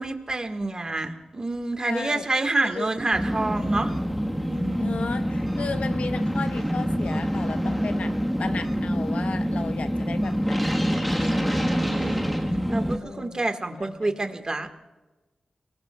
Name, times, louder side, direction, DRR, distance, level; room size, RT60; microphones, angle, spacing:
voice 1, 0.0-3.9 4.5-5.0 11.2-12.3 12.7-14.8, right 2 dB, 35° right, 6 dB, 1.5 m, -28 dB
voice 2, 1.8-2.2 2.6-2.9 4.8-8.1 8.4-10.9 11.2-11.7 13.0-14.1, left 4 dB, 75° left, 9 dB, 0.8 m, -35 dB
sound 1, 3.1-13.0, equal, ahead, 1.3 m, -26 dB
24.5 x 19.5 x 2.3 m, 1.2 s
wide cardioid pair, 75°, 2 cm